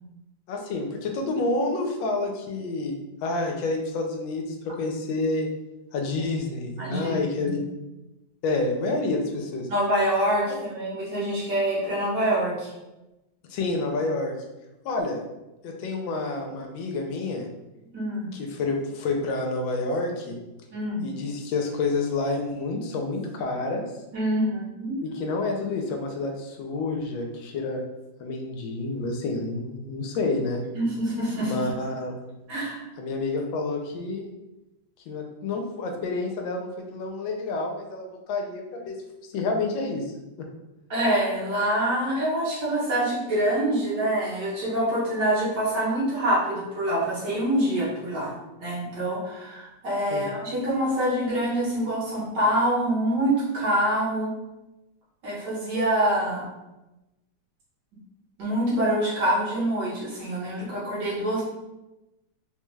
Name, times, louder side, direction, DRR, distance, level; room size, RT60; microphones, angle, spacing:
voice 1, 0.5-2.9 3.2-5.5 5.9-7.6 8.4-9.7 13.5-14.3 14.8-15.2 15.6-17.5 18.3-20.4 21.0-23.8 25.0-27.8 28.2-30.6 31.4-32.1 33.0-34.3 35.1-38.9 39.3-40.0 40.4-40.5 50.1-50.3, left 3 dB, 85° left, 2 dB, 1.3 m, -28 dB
voice 2, 6.8-7.6 9.7-12.7 17.9-18.3 20.7-21.0 24.1-25.0 30.7-31.7 32.5-32.8 40.9-48.3 48.6-54.3 55.2-56.5 58.4-61.4, right 1 dB, 65° right, -7 dB, 1.9 m, -25 dB
3.9 x 2.3 x 3.1 m, 0.99 s
omnidirectional pair, 2.0 m